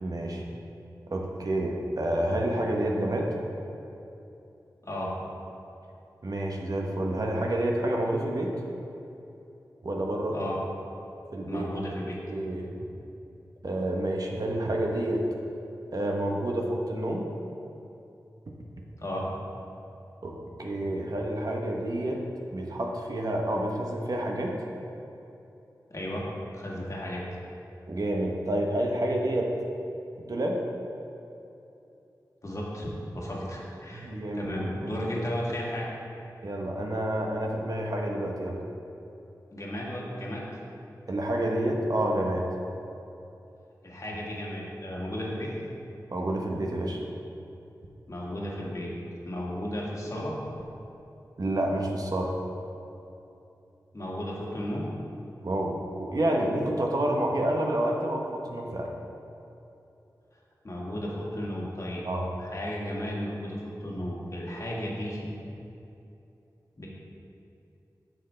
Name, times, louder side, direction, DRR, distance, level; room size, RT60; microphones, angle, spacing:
voice 1, 0.0-0.4 1.1-3.3 6.2-8.5 9.8-10.3 11.3-11.6 12.3-12.7 13.6-15.2 15.9-17.3 20.2-22.2 22.5-24.5 27.9-29.5 30.2-30.6 33.9-34.5 34.8-34.9 36.4-38.6 41.1-42.4 46.1-47.0 51.4-52.3 55.4-58.9 62.0-62.3, right 1 dB, 55° right, 0 dB, 0.9 m, -29 dB
voice 2, 4.8-5.1 10.3-10.6 11.5-12.2 19.0-19.3 25.9-27.2 32.4-32.9 33.1-34.1 34.3-35.9 39.5-40.4 43.8-45.5 48.1-48.9 49.3-50.4 53.9-54.9 60.6-62.0 62.4-65.3 66.8-66.9, equal, 45° left, -4 dB, 1.7 m, -34 dB
7.5 x 6.8 x 3.3 m, 2.8 s
cardioid pair, 45°, 7 cm